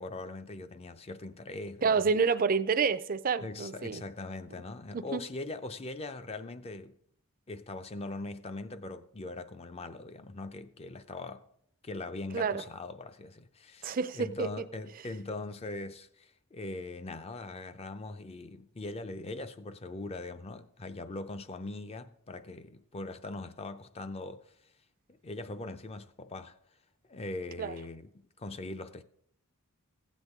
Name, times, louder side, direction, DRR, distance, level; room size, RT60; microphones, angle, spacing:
voice 1, 0.0-2.0 3.4-6.9 7.5-11.4 11.8-24.4 25.2-26.5 27.1-28.1 28.4-29.0, left 2 dB, 25° left, 0.5 m, -41 dB
voice 2, 1.8-4.0 4.9-5.2 12.3-12.6 13.8-14.5 27.6-27.8, right 5 dB, 40° right, 0.4 m, -28 dB
15.5 x 8.2 x 3.6 m
head